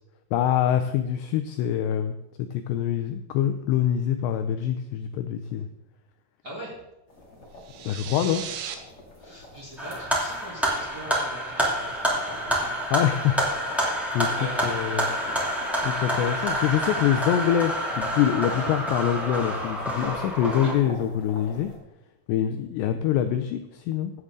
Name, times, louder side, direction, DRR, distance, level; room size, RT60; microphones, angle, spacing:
voice 1, 0.3-5.7 7.9-8.4 12.9-13.6 14.1-14.3 14.6-15.1 15.8-21.7 22.3-24.1, left 10 dB, 85° left, 7 dB, 2.5 m, -25 dB
voice 2, 6.4-6.7 9.2-12.7 14.3-15.3 16.4-16.5 20.6-20.7, right 1 dB, 25° right, -6 dB, 2.6 m, -42 dB
sound 1, 7.1-21.8, left 1 dB, 30° left, 2.0 m, -43 dB
sound 2, 7.6-8.8, right 9 dB, 80° right, 2.6 m, -36 dB
sound 3, 9.8-20.7, right 1 dB, ahead, 1.2 m, -28 dB
16.0 x 8.1 x 3.7 m, 0.91 s
omnidirectional pair, 5.5 m